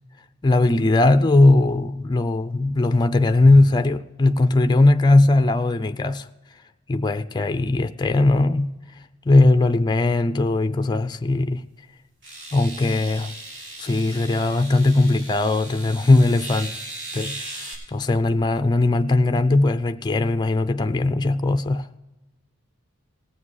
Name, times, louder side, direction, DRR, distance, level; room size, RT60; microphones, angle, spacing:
voice 1, 0.4-6.3 6.9-8.8 9.3-11.6 12.5-13.3 13.8-16.7 17.1-22.0, left 2 dB, 20° left, 0.4 m, -19 dB
sound 1, 11.3-11.4 12.2-17.7, right 2 dB, 55° right, 3.6 m, -37 dB
18.5 x 7.5 x 4.8 m
head